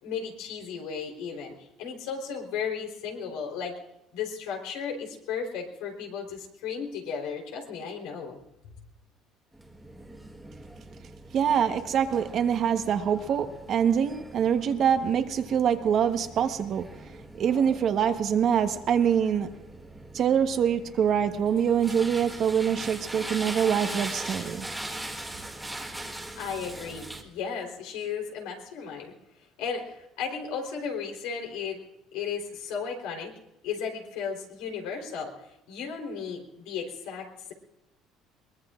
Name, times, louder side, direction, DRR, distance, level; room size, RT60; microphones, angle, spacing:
voice 1, 0.0-3.7 4.1-8.4 26.4-29.1 29.6-31.8 32.1-33.3 33.6-37.5, left 6 dB, 85° left, 2 dB, 3.7 m, -35 dB
sound 1, 9.5-27.2, right 1 dB, 5° right, 1.5 m, -41 dB
voice 2, 11.3-16.9 17.3-19.5 20.1-24.7, right 8 dB, 45° right, 8 dB, 1.1 m, -25 dB
22.5 x 20.5 x 2.5 m, 0.89 s
cardioid pair, 130°, 0 cm